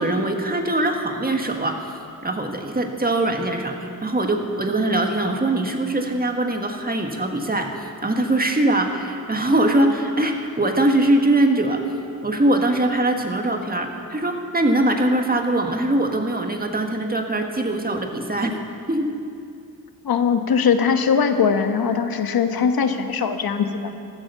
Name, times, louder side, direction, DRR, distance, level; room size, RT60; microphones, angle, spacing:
voice 1, 0.0-11.8 12.2-18.6 18.9-19.1, right 1 dB, 25° right, 4 dB, 1.6 m, -22 dB
voice 2, 20.0-23.9, left 6 dB, 75° left, 7 dB, 1.2 m, -20 dB
15.0 x 13.0 x 6.8 m, 2.5 s
wide cardioid pair, 90°, 36 cm